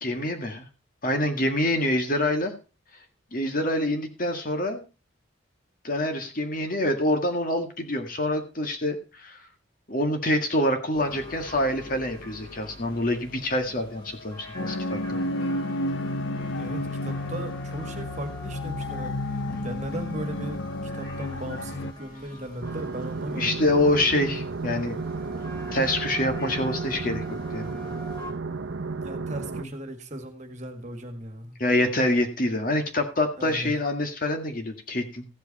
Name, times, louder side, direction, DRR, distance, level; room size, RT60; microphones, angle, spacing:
voice 1, 0.0-0.7 1.0-2.5 3.3-4.8 5.8-9.4 9.9-15.2 19.5-19.6 23.3-25.0 25.7-27.2 27.5-27.7 29.6-29.7 31.6-35.3, left 1 dB, 45° left, 5 dB, 1.9 m, -26 dB
sound 1, 10.9-28.3, left 2 dB, 20° left, 3.5 m, -43 dB
sound 2, 14.5-21.9, left 1 dB, 70° left, 0.8 m, -31 dB
voice 2, 16.6-19.2 19.6-23.6 29.0-31.6 33.4-33.7, right 1 dB, 35° right, 6 dB, 1.9 m, -37 dB
sound 3, 22.6-29.6, right 4 dB, 80° right, 0.8 m, -33 dB
15.0 x 8.3 x 4.2 m, 0.32 s
head